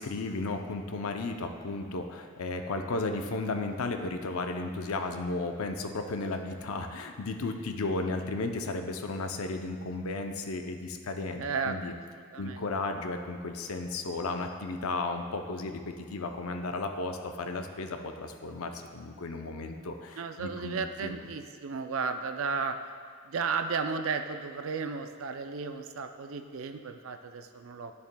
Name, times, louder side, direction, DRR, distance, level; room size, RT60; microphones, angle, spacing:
voice 1, 0.0-11.9 12.4-21.1, left 3 dB, 75° left, 5 dB, 0.6 m, -34 dB
voice 2, 11.4-11.8 12.1-12.6 20.2-22.8 23.2-27.9, right 5 dB, 65° right, 7 dB, 0.4 m, -34 dB
11.0 x 6.9 x 2.2 m, 2.1 s
head